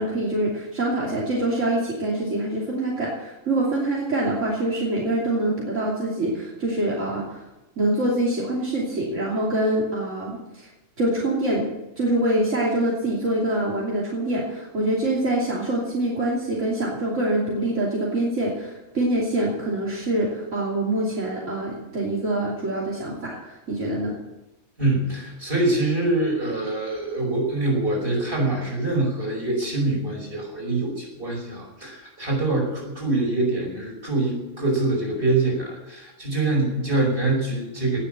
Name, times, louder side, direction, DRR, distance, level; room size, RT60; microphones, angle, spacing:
voice 1, 0.0-7.4 7.8-10.7 11.0-11.7 12.0-24.2, right 1 dB, 70° right, -5 dB, 3.3 m, -25 dB
voice 2, 24.8-38.0, right 2 dB, 45° right, -1 dB, 5.8 m, -24 dB
19.0 x 7.1 x 8.9 m, 0.99 s
omnidirectional pair, 1.3 m